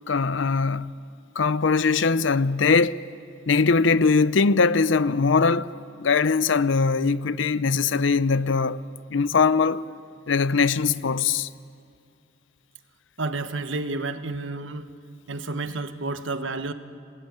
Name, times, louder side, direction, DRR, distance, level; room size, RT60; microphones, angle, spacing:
voice 1, 0.1-0.9 1.4-3.0 3.5-8.8 9.1-9.9 10.3-11.5, left 4 dB, 75° left, 0.6 m, -21 dB
voice 2, 13.2-14.9 15.3-16.7, right 3 dB, 80° right, 1.2 m, -30 dB
28.0 x 19.5 x 9.4 m
head